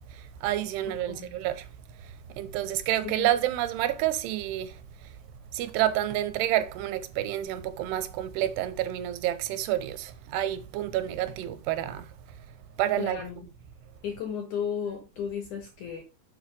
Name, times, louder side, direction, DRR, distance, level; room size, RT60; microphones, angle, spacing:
voice 1, 0.1-1.7 2.0-4.8 5.5-12.1 12.8-13.2, right 13 dB, 80° right, 2.7 m, -29 dB
voice 2, 13.0-13.3 14.0-16.0, left 7 dB, 65° left, 2.0 m, -34 dB
7.3 x 4.6 x 5.1 m
omnidirectional pair, 4.9 m